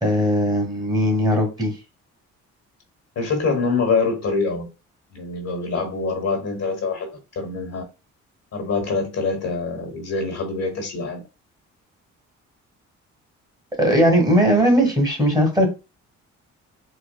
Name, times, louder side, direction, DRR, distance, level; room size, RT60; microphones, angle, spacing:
voice 1, 0.0-1.7 13.8-15.7, equal, 15° right, 1.4 m, -18 dB
voice 2, 3.1-4.7 5.1-7.8 8.5-11.2, left 4 dB, 60° left, 1.3 m, -25 dB
4.1 x 2.1 x 2.3 m
cardioid pair, 90°, 30 cm